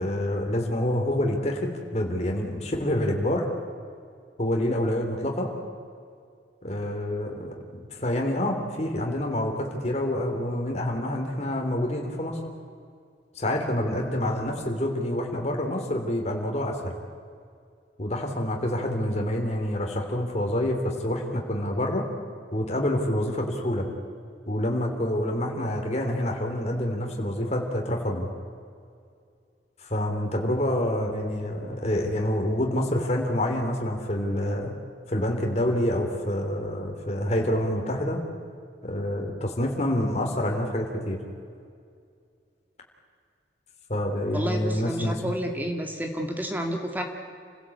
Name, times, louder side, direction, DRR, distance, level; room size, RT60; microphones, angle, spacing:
voice 1, 0.0-3.5 4.4-5.5 6.6-12.4 13.3-16.9 18.0-22.1 22.5-23.8 24.5-28.3 29.8-34.7 35.1-38.2 38.8-41.2 43.9-45.2, left 1 dB, 40° left, 1 dB, 3.3 m, -27 dB
voice 2, 44.3-47.0, equal, 10° right, 3 dB, 2.0 m, -30 dB
28.5 x 16.0 x 8.5 m, 2.3 s
head